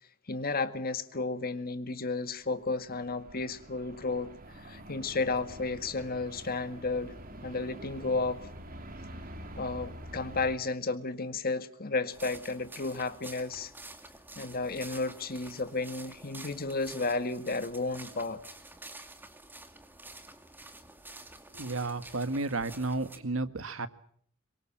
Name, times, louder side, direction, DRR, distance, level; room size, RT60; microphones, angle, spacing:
voice 1, 0.3-4.3 4.6-7.1 7.4-8.5 9.6-13.7 14.4-18.4, left 3 dB, 50° left, 10 dB, 1.9 m, -33 dB
sound 1, 2.3-10.6, right 1 dB, 45° right, 3.5 m, -46 dB
sound 2, 12.1-23.2, right 2 dB, 10° right, 2.5 m, -49 dB
voice 2, 21.5-23.9, right 3 dB, 80° right, 11 dB, 1.7 m, -32 dB
26.0 x 23.5 x 7.6 m, 0.64 s
head